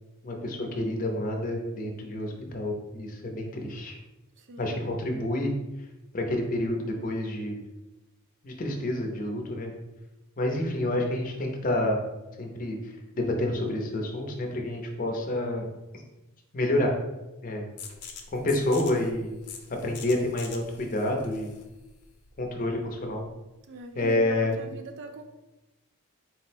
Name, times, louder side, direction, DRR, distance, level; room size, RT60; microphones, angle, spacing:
voice 1, 0.2-4.0 4.6-5.5 6.1-7.6 8.4-9.7 10.4-12.0 12.4-15.6 16.5-16.9 17.4-17.7 18.3-19.4 19.7-21.5 22.4-23.2 23.9-24.5, left 1 dB, 40° left, 1 dB, 0.6 m, -28 dB
voice 2, 4.4-4.8 23.7-25.2, right 4 dB, 55° right, 6 dB, 0.4 m, -40 dB
sound 1, 17.8-23.3, left 6 dB, 90° left, 0.6 m, -45 dB
4.1 x 2.1 x 4.3 m, 1.0 s
head